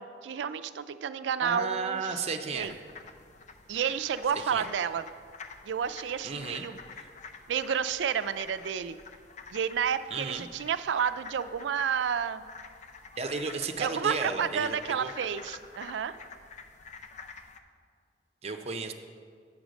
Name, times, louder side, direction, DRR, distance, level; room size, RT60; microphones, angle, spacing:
voice 1, 0.0-2.2 2.5-2.7 3.7-5.0 5.6-6.8 7.5-9.0 9.5-12.4 13.8-16.1, right 7 dB, 85° right, 13 dB, 0.4 m, -30 dB
voice 2, 1.4-2.7 4.5-4.7 6.2-6.6 7.0-7.1 10.1-10.4 13.2-15.1 18.4-18.9, right 4 dB, 35° right, 6 dB, 0.6 m, -34 dB
sound 1, 2.5-17.6, left 4 dB, 45° left, 0.5 m, -48 dB
8.6 x 6.2 x 5.1 m, 2.2 s
head